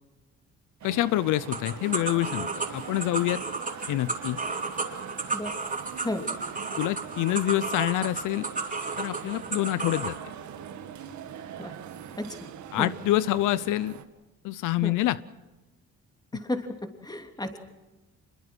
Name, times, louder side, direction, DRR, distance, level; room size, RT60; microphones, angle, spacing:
voice 1, 0.8-3.4 3.9-4.4 6.8-8.5 9.0-10.2 12.7-14.0 14.4-15.2, left 15 dB, 90° left, 17 dB, 0.7 m, -26 dB
sound 1, 0.8-14.0, right 8 dB, 70° right, 1.8 m, -42 dB
sound 2, 1.5-10.2, right 3 dB, 25° right, 3.7 m, -33 dB
voice 2, 12.2-12.9 14.8-15.0 16.3-17.6, left 1 dB, 15° left, 5 dB, 3.0 m, -33 dB
26.0 x 22.0 x 6.3 m, 1.1 s
cardioid pair, 90°, 30 cm